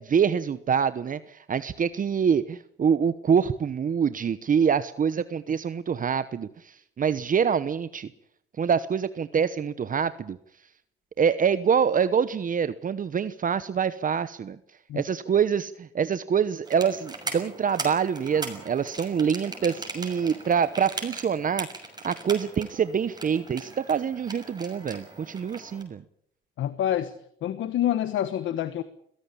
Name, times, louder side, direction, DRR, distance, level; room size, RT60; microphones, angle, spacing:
voice 1, 0.0-8.1 8.6-10.4 11.2-14.6 14.9-21.7 22.0-26.0, right 7 dB, 45° right, 14 dB, 1.0 m, -25 dB
sound 1, 16.6-25.8, right 3 dB, 20° right, 6.6 m, -39 dB
voice 2, 26.6-27.1 27.4-28.8, left 11 dB, 75° left, 13 dB, 1.3 m, -27 dB
22.5 x 17.0 x 8.5 m, 0.70 s
cardioid pair, 90°, 20 cm